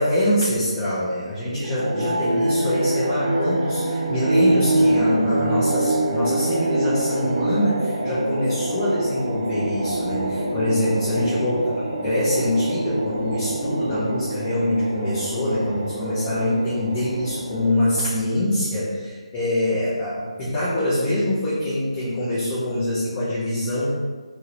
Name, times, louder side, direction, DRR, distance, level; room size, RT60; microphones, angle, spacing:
voice 1, 0.0-23.9, left 1 dB, 20° left, -10 dB, 0.7 m, -24 dB
sound 1, 1.6-18.2, right 1 dB, 40° right, 0.7 m, -25 dB
3.0 x 2.8 x 2.9 m, 1.5 s
figure-of-eight pair, 150°, 3 cm